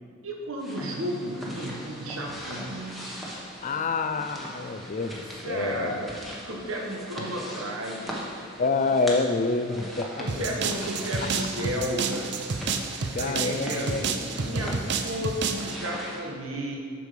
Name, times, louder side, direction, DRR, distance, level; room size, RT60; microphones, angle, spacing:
voice 1, 0.2-3.2 5.4-6.2 6.5-8.3 10.2-12.5 13.2-14.0 14.3-16.8, right 1 dB, 75° right, 0 dB, 1.3 m, -33 dB
sound 1, 0.6-16.2, equal, ahead, 1.2 m, -40 dB
voice 2, 3.6-6.0 8.6-10.6 11.2-11.3 13.1-15.0, left 3 dB, 40° left, 9 dB, 0.4 m, -28 dB
sound 2, 10.3-15.8, right 5 dB, 55° right, 0.5 m, -30 dB
8.2 x 6.2 x 5.0 m, 2.4 s
head